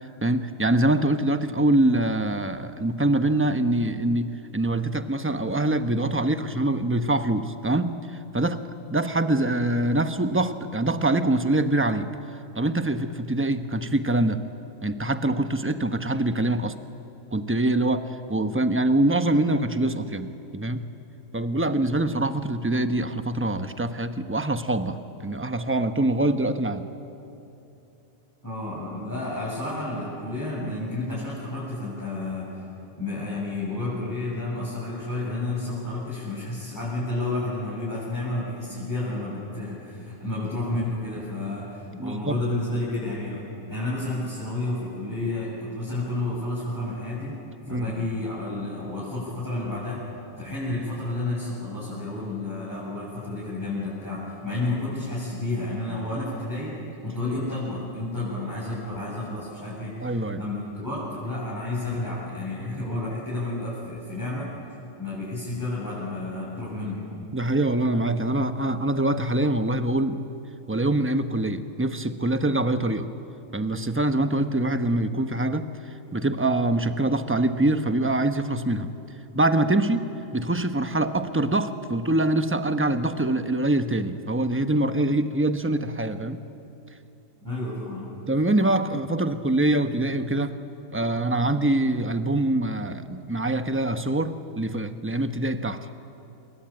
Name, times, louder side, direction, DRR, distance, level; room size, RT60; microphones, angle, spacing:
voice 1, 0.2-8.6 8.9-12.1 12.5-14.4 14.8-16.8 17.3-20.9 21.3-26.9 42.0-42.4 47.7-47.9 60.0-60.4 67.3-70.2 70.7-73.1 73.5-78.9 79.3-86.4 88.3-90.6 90.9-96.0, right 1 dB, 10° right, 9 dB, 0.8 m, -24 dB
voice 2, 28.4-32.6 33.0-47.4 47.7-50.0 50.4-56.8 57.0-64.5 65.0-67.1 87.4-88.2, left 2 dB, 15° left, -9 dB, 8.0 m, -31 dB
28.0 x 22.5 x 8.9 m, 2.9 s
omnidirectional pair, 1.5 m